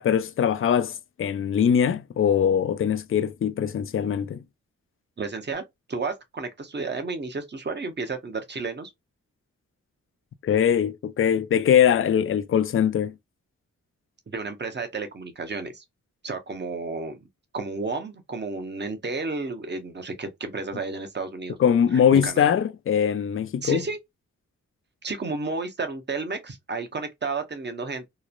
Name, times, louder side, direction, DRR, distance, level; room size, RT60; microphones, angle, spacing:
voice 1, 0.0-4.4 10.4-13.1 21.6-23.8, left 8 dB, 40° left, 0.4 m, -22 dB
voice 2, 5.2-5.6 5.9-8.9 14.3-15.8 16.2-17.2 17.5-21.6 22.1-22.5 23.6-24.0 25.0-28.1, right 3 dB, 35° right, 0.8 m, -32 dB
3.0 x 2.1 x 2.4 m
cardioid pair, 60°, 33 cm